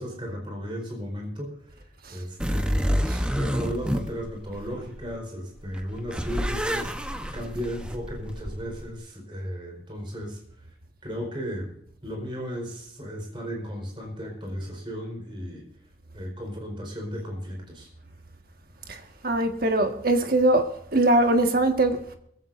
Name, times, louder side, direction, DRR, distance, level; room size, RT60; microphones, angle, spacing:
voice 1, 0.0-1.8 2.1-10.4 11.0-11.7 12.0-15.7 16.1-17.9, equal, 25° right, 4.7 m, -35 dB
sound 1, 2.4-5.1 5.6-8.9, equal, 5° right, 1.0 m, -29 dB
voice 2, 18.9-20.7 20.9-22.2, right 2 dB, 50° right, 1.7 m, -22 dB
21.0 x 15.0 x 2.7 m
head